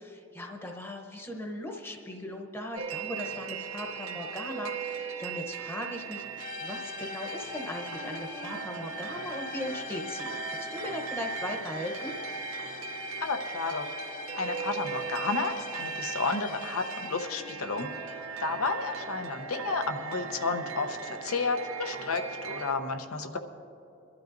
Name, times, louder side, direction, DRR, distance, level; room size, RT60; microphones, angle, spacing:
voice 1, 0.0-12.1, left 1 dB, 10° left, 1 dB, 0.8 m, -38 dB
sound 1, 2.8-22.7, right 6 dB, 80° right, 0.7 m, -39 dB
sound 2, 6.4-17.5, left 5 dB, 40° left, 0.4 m, -42 dB
voice 2, 13.2-13.9 14.4-17.9 18.4-23.4, left 3 dB, 90° left, 7 dB, 0.9 m, -31 dB
24.0 x 12.5 x 2.6 m, 2.9 s
head